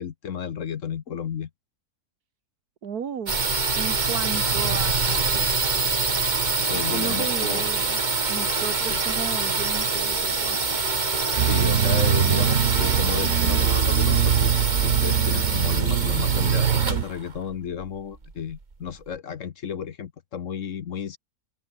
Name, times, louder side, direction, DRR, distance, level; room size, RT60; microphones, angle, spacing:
voice 1, 0.0-1.5 6.5-7.7 8.9-9.0 11.3-14.5 14.8-21.2, left 8 dB, 60° left, 1.3 m, -33 dB
voice 2, 2.8-3.4 3.7-5.6 6.9-8.0 8.3-10.8, right 7 dB, 90° right, 2.0 m, -34 dB
sound 1, 3.3-18.9, right 4 dB, 30° right, 1.6 m, -25 dB
sound 2, 11.4-17.0, right 9 dB, 60° right, 1.3 m, -22 dB
omnidirectional pair, 1.6 m